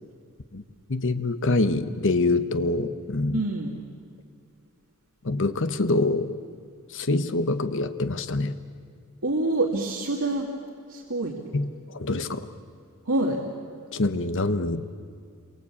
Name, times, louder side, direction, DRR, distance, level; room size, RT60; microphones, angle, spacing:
voice 1, 0.9-3.4 5.2-6.4 6.9-8.6 11.5-12.5 13.9-14.9, left 2 dB, 60° left, 10 dB, 1.1 m, -25 dB
voice 2, 3.3-3.8 9.2-10.5 10.9-11.3 13.1-13.4, right 2 dB, 65° right, -1 dB, 2.4 m, -26 dB
28.5 x 23.5 x 8.6 m, 2.2 s
head